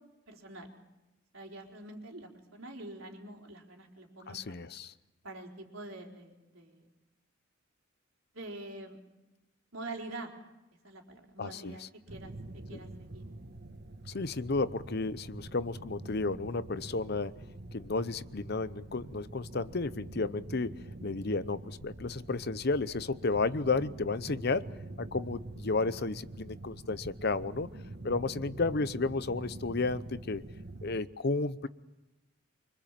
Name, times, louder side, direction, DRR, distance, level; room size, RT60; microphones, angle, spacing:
voice 1, 0.3-0.7 1.3-4.7 5.2-6.9 8.3-9.0 9.7-10.3 10.8-12.3 12.7-13.2 23.5-23.6, right 2 dB, 90° right, 1 dB, 4.2 m, -45 dB
voice 2, 4.3-4.9 11.4-11.8 14.1-17.3 17.7-24.7 25.0-27.7 28.0-30.4 30.8-31.7, left 3 dB, 50° left, 15 dB, 0.8 m, -32 dB
sound 1, 12.1-31.0, right 2 dB, 55° right, 1.3 m, -45 dB
25.0 x 25.0 x 7.5 m, 1.0 s
head